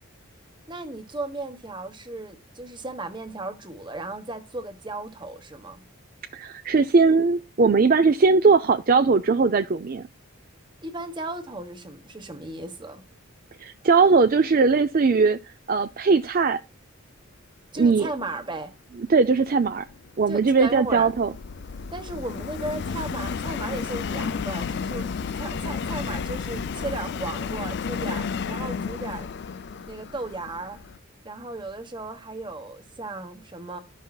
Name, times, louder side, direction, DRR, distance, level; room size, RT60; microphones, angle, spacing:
voice 1, 0.7-5.8 10.8-13.0 17.7-18.7 20.3-21.1 21.9-25.1 25.4-29.3 29.9-30.8 31.2-33.8, right 2 dB, 20° right, 1.2 m, -35 dB
voice 2, 6.3-10.0 13.6-15.4 15.7-16.6 17.8-18.1 19.1-19.8 20.2-21.3, right 4 dB, 40° right, 0.4 m, -19 dB
Subway metro underground, 19.7-31.0, left 5 dB, 55° left, 0.5 m, -32 dB
14.0 x 5.5 x 2.3 m
head